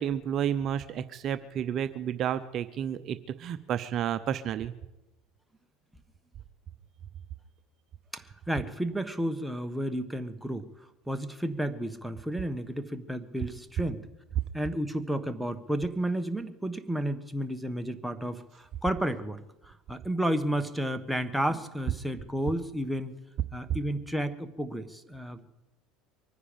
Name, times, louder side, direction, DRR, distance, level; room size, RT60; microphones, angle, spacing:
voice 1, 0.0-4.7, right 9 dB, 50° right, 11 dB, 0.7 m, -31 dB
voice 2, 8.1-10.7 11.1-14.1 14.5-23.2 23.5-25.5, right 1 dB, ahead, 7 dB, 1.3 m, -32 dB
24.0 x 9.7 x 5.2 m, 0.95 s
supercardioid pair, 100°, 0 cm